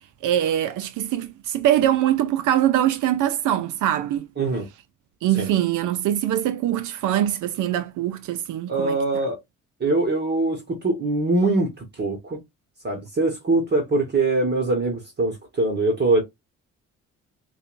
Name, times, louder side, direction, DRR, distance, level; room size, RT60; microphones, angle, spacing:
voice 1, 0.2-4.3 5.2-9.0, right 12 dB, 85° right, 0.6 m, -23 dB
voice 2, 4.4-4.7 5.3-5.5 8.7-9.4 9.8-12.4 12.8-16.2, right 2 dB, 35° right, 1.4 m, -23 dB
6.7 x 2.4 x 2.5 m
cardioid pair, 90°, 30 cm